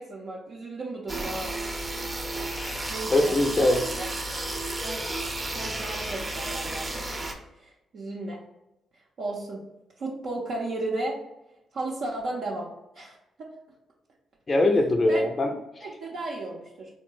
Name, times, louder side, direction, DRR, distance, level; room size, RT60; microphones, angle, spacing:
voice 1, 0.0-1.5 2.9-3.7 4.0-4.1 4.8-5.0 5.5-7.0 7.6-8.4 9.2-9.6 10.0-11.2 11.7-12.7 12.9-13.2 15.0-15.3 15.8-16.9, right 2 dB, 65° right, -4 dB, 0.6 m, -34 dB
sound 1, 1.1-7.3, right 2 dB, 25° right, 0.7 m, -32 dB
voice 2, 2.4-2.8 3.1-3.8 14.5-15.9, left 2 dB, 40° left, 4 dB, 0.5 m, -23 dB
3.6 x 2.2 x 3.0 m, 0.91 s
hypercardioid pair, 40°, 0 cm